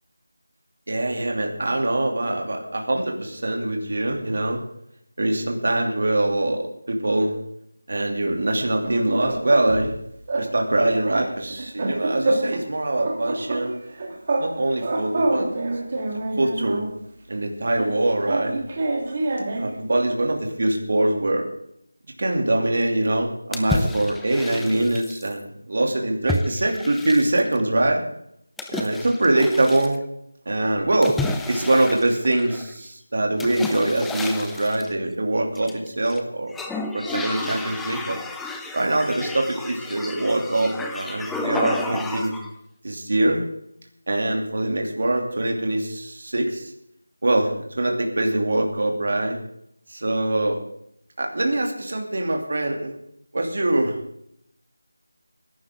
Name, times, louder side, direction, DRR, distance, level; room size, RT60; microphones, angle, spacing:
voice 1, 0.9-4.6 5.2-7.3 7.9-9.9 10.4-13.8 14.4-15.5 16.4-16.8 17.3-18.6 19.5-21.4 22.2-28.0 28.7-30.0 30.5-31.2 31.5-36.6 36.9-38.2 38.7-42.3 42.8-43.5 44.1-46.7 47.2-49.4 49.9-50.6 51.2-53.0 53.3-54.0, right 1 dB, 45° right, 2 dB, 2.8 m, -23 dB
sound 1, 8.6-9.9 10.3-10.5 10.8-12.7 13.0-14.5 14.8-16.9 17.8-19.8, right 2 dB, 25° right, 2.0 m, -27 dB
sound 2, 23.5-25.3 26.3-27.6 28.6-30.0 31.0-32.7 33.4-34.9 35.5-36.2 36.5-42.5, left 2 dB, ahead, 0.4 m, -31 dB
19.5 x 11.5 x 3.8 m, 0.74 s
figure-of-eight pair, 175°, 0 cm